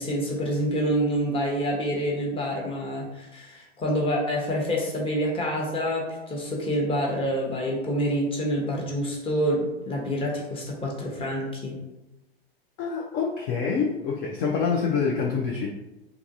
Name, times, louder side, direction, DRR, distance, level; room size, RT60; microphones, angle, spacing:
voice 1, 0.0-11.8, equal, 20° left, -2 dB, 0.9 m, -27 dB
voice 2, 12.8-15.7, left 5 dB, 40° left, 0 dB, 0.5 m, -26 dB
3.5 x 2.9 x 2.6 m, 0.97 s
figure-of-eight pair, 90°, 30 cm